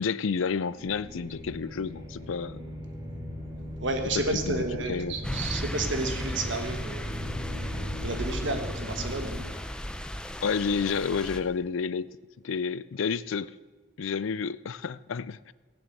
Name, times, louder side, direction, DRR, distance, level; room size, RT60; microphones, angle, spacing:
voice 1, 0.0-2.6 4.1-4.6 4.9-5.5 10.4-12.2 12.4-13.5 14.0-15.5, left 5 dB, 85° left, 0.5 m, -30 dB
sound 1, 0.8-9.4, left 1 dB, 20° right, 2.8 m, -38 dB
voice 2, 3.8-7.1 8.0-9.4, right 2 dB, 70° right, 1.6 m, -31 dB
sound 2, 5.2-11.4, equal, 5° left, 0.6 m, -35 dB
17.5 x 7.2 x 7.7 m
head